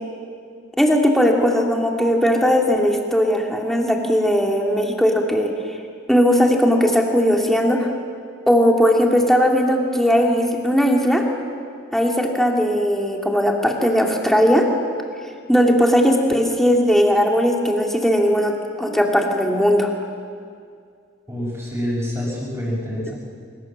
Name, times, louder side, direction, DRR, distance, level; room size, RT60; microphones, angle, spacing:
voice 1, 0.8-5.5 6.1-7.9 8.5-11.2 11.9-14.6 15.5-19.9, equal, ahead, 0 dB, 2.8 m, -18 dB
voice 2, 21.3-23.1, equal, 15° right, -9 dB, 6.5 m, -26 dB
26.0 x 25.0 x 7.6 m, 2.2 s
head